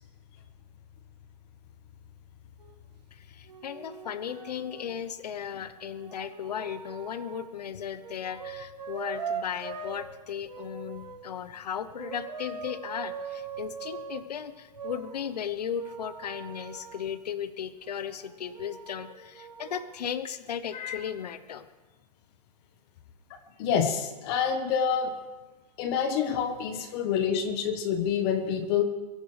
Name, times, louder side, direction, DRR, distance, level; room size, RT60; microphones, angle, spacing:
sound 1, 2.6-2.7 3.5-4.9 5.8-7.5 8.0-10.1 10.5-11.2 11.9-14.3 14.7-17.0 17.8-19.8, right 6 dB, 80° right, 2.1 m, -41 dB
voice 1, 3.1-21.7, left 8 dB, 70° left, 13 dB, 1.0 m, -36 dB
voice 2, 23.6-25.1 25.8-28.8, left 7 dB, 35° left, 7 dB, 1.4 m, -27 dB
23.5 x 14.0 x 3.4 m, 1.2 s
hypercardioid pair, 140°, 21 cm